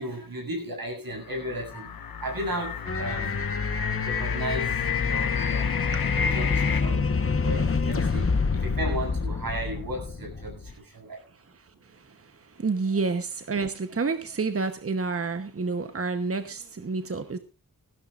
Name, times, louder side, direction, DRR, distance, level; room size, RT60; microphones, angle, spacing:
voice 1, 0.0-1.9 2.2-3.5 4.0-5.8 6.1-7.1 7.4-11.2, right 1 dB, 80° right, 1 dB, 7.6 m, -35 dB
sound 1, 1.2-6.8, left 7 dB, 85° left, 0.9 m, -31 dB
sound 2, 2.9-10.7, left 4 dB, 40° left, 1.1 m, -27 dB
voice 2, 11.3-17.4, right 4 dB, 40° right, 9 dB, 1.0 m, -30 dB
19.0 x 16.0 x 2.5 m, 0.30 s
wide cardioid pair, 85°, 35 cm